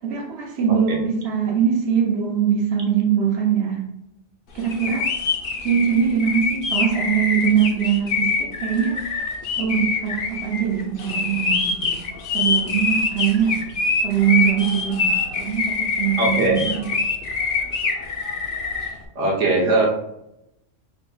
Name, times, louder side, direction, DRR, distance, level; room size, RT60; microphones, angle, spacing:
voice 1, 0.0-3.8 4.5-5.1 5.6-9.0 9.5-12.0 12.3-13.6 14.0-16.9, right 8 dB, 60° right, -2 dB, 1.0 m, -22 dB
sound 1, 4.6-18.9, left 4 dB, 50° left, 0.7 m, -24 dB
voice 2, 16.2-16.8 19.1-19.9, right 2 dB, 75° right, -2 dB, 1.3 m, -20 dB
5.3 x 3.5 x 2.3 m, 0.86 s
omnidirectional pair, 1.3 m